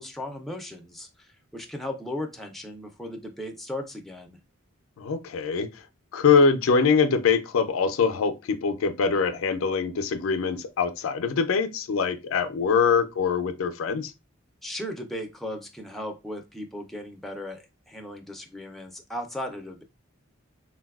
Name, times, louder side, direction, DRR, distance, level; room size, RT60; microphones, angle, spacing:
voice 1, 0.0-4.4 14.6-17.6 17.9-19.8, left 1 dB, ahead, 0.4 m, -36 dB
voice 2, 5.0-5.8 6.1-14.1, left 5 dB, 80° left, 0.4 m, -23 dB
3.9 x 2.2 x 2.3 m
head